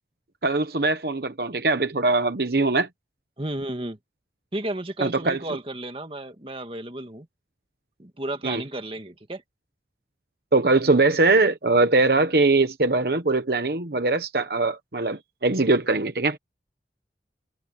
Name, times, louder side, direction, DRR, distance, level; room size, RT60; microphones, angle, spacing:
voice 1, 0.4-2.9 5.0-5.4 8.4-8.6 10.5-16.4, right 3 dB, 55° right, 1.0 m, -21 dB
voice 2, 3.4-4.0 4.5-7.3 8.0-9.4, right 1 dB, 30° right, 1.8 m, -33 dB
head